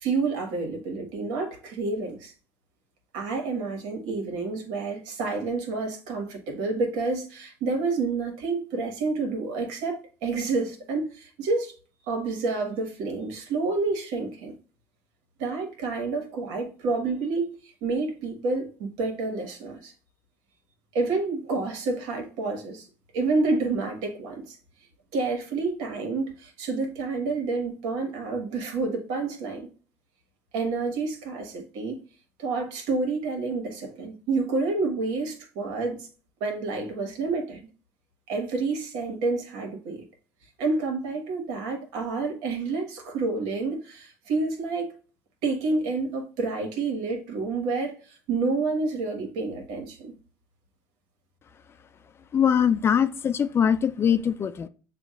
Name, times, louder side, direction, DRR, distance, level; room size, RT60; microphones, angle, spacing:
voice 1, 0.0-2.3 3.1-11.7 12.1-14.5 15.4-19.9 20.9-22.9 23.1-24.6 25.1-29.7 30.5-32.0 32.4-36.1 36.4-37.6 38.3-40.0 40.6-44.9 45.4-50.1, right 3 dB, 80° right, 1.4 m, -29 dB
voice 2, 52.3-54.7, left 8 dB, 35° left, 0.5 m, -22 dB
6.9 x 2.5 x 2.4 m
supercardioid pair, 95°, 7 cm